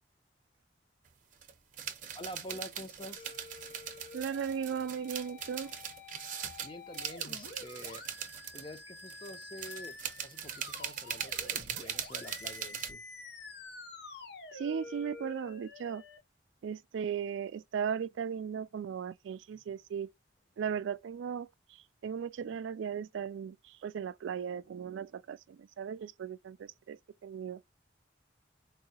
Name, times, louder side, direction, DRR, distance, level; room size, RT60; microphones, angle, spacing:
sound 1, 1.1-1.2 1.3-12.9, right 8 dB, 45° right, 0.7 m, -40 dB
voice 1, 2.1-3.3 6.6-8.0 8.5-10.0 10.2-13.0, equal, 25° left, 0.7 m, -47 dB
sound 2, 3.2-16.2, left 3 dB, 60° left, 0.8 m, -49 dB
voice 2, 4.1-5.7 14.5-16.0 16.6-20.1 20.6-27.6, right 7 dB, 80° right, 0.3 m, -37 dB
4.5 x 2.8 x 2.8 m
head